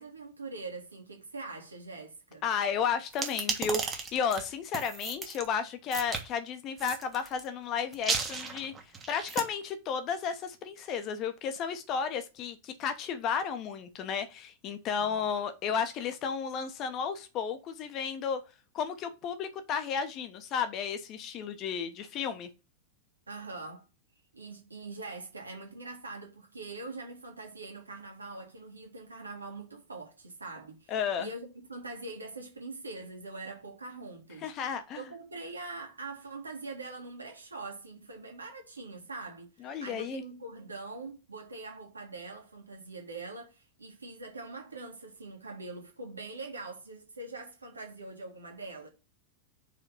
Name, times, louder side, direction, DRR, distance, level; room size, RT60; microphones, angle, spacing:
voice 1, 0.0-2.5 15.0-15.3 23.3-23.9 24.3-34.7 35.0-48.9, right 3 dB, 80° right, 1.8 m, -43 dB
voice 2, 2.4-8.7 9.1-18.4 18.7-22.5 30.9-31.3 34.4-35.0 39.6-40.2, left 6 dB, 35° left, 1.1 m, -33 dB
sound 1, 3.1-5.4 5.9-6.2 6.8-7.4 7.9-9.4, right 5 dB, 20° right, 1.4 m, -34 dB
5.2 x 4.2 x 5.3 m
figure-of-eight pair, 90°, 0 cm